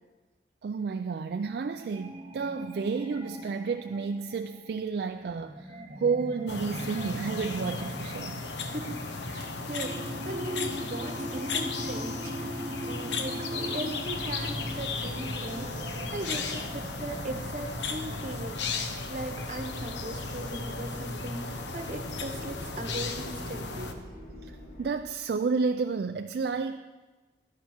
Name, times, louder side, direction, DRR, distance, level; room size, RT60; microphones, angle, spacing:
voice 1, 0.6-8.4 24.4-26.8, right 5 dB, 65° right, 7 dB, 0.3 m, -31 dB
sound 1, 1.4-19.4, equal, 25° right, 1.0 m, -41 dB
sound 2, 6.5-23.9, left 4 dB, 85° left, 0.9 m, -35 dB
voice 2, 8.6-24.0, right 1 dB, 45° right, 6 dB, 1.0 m, -39 dB
sound 3, 14.1-24.9, right 1 dB, 50° left, 1.9 m, -45 dB
12.0 x 10.5 x 4.4 m, 1.3 s
head